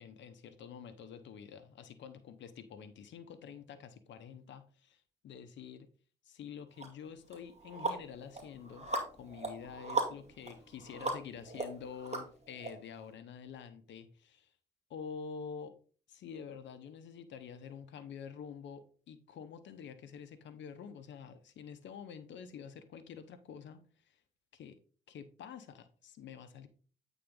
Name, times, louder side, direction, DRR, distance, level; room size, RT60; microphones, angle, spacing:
voice 1, 0.0-5.9 6.2-14.5 14.9-15.8 16.1-23.8 24.1-24.2 24.5-24.8 25.1-26.7, left 7 dB, 70° left, 1.0 m, -48 dB
sound 1, 6.8-6.9 7.3-12.7, right 3 dB, 35° right, 2.2 m, -38 dB
8.6 x 4.0 x 3.8 m
hypercardioid pair, 45°, 19 cm